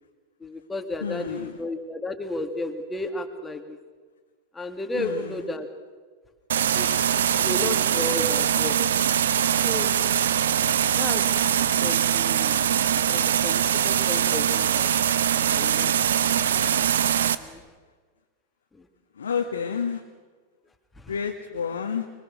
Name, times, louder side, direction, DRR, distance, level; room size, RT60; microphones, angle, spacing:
voice 1, 0.4-3.8 4.5-5.7 6.7-6.9 7.1-8.8 9.6-10.0 11.0-11.3 11.5-12.6 13.1-14.9 15.5-15.9 17.4-17.6 18.7-18.9 21.0-21.1, left 2 dB, 10° left, 5 dB, 2.5 m, -33 dB
voice 2, 1.0-1.6 4.9-5.4 19.2-20.0 21.1-22.1, left 6 dB, 70° left, 3 dB, 1.6 m, -30 dB
sound 1, 6.5-17.3, right 9 dB, 65° right, 0.9 m, -22 dB
24.5 x 23.5 x 6.5 m, 1.4 s
figure-of-eight pair, 90°, 0 cm